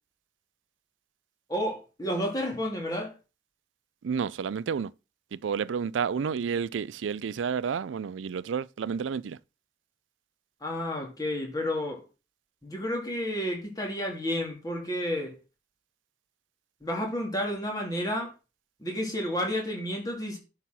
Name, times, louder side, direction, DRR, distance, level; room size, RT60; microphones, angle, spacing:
voice 1, 1.5-3.1 10.6-12.1 12.6-15.4 16.8-18.3 18.8-20.4, equal, 20° left, 2.7 m, -31 dB
voice 2, 4.0-4.9 5.3-9.4, right 6 dB, 85° right, 0.4 m, -30 dB
11.0 x 4.4 x 6.0 m
head